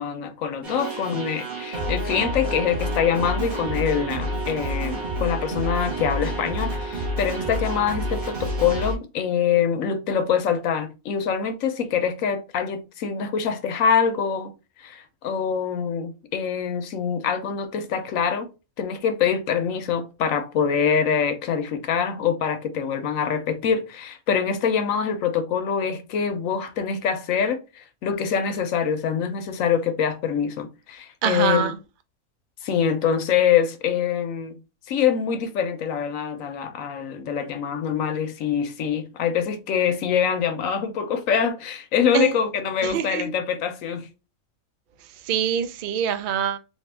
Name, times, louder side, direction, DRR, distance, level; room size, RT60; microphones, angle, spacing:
voice 1, 0.0-18.5 18.8-31.7 32.6-34.5 34.9-44.1, left 7 dB, 75° left, 1.0 m, -24 dB
sound 1, 0.6-8.9, right 1 dB, 35° right, 1.4 m, -29 dB
voice 2, 31.2-31.7 42.1-42.3 42.8-43.3 45.3-46.6, right 8 dB, 80° right, 0.4 m, -24 dB
3.6 x 2.6 x 3.2 m
omnidirectional pair, 1.4 m